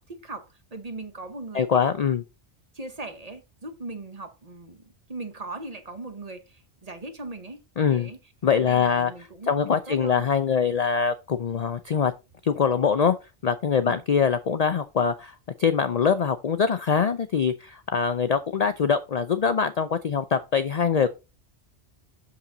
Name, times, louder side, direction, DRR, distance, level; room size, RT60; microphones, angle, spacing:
voice 1, 0.0-2.1 2.7-7.6 7.9-8.2 8.6-10.3 13.9-14.0, right 2 dB, 35° right, 1.0 m, -39 dB
voice 2, 1.5-2.2 7.8-8.1 8.4-9.1 9.5-12.1 12.4-13.2 13.4-21.1, left 6 dB, 55° left, 0.4 m, -23 dB
6.9 x 5.7 x 3.9 m
omnidirectional pair, 1.2 m